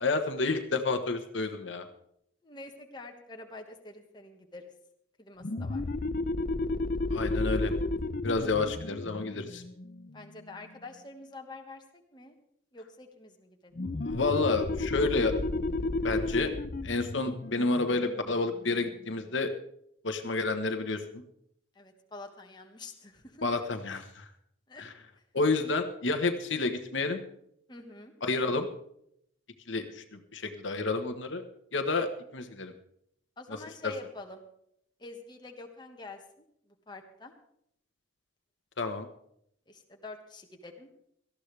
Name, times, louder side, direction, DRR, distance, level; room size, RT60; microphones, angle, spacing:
voice 1, 0.0-1.8 7.1-7.7 8.2-9.6 13.9-15.3 16.0-16.5 16.8-19.5 20.0-21.2 23.4-24.3 24.8-24.9 25.3-27.2 28.2-28.7 29.7-31.4 31.7-32.7 33.8-33.9 38.8-39.1, left 3 dB, 65° left, 6 dB, 1.2 m, -30 dB
voice 2, 2.4-4.7 5.2-5.8 10.1-12.4 12.7-13.8 21.7-23.4 24.7-24.8 27.7-28.1 33.4-34.4 35.0-37.3 39.7-41.1, left 2 dB, 20° left, 2 dB, 1.6 m, -47 dB
sound 1, 5.4-10.7 13.8-19.0, left 2 dB, 45° left, 0.6 m, -33 dB
18.5 x 13.5 x 3.4 m, 0.72 s
head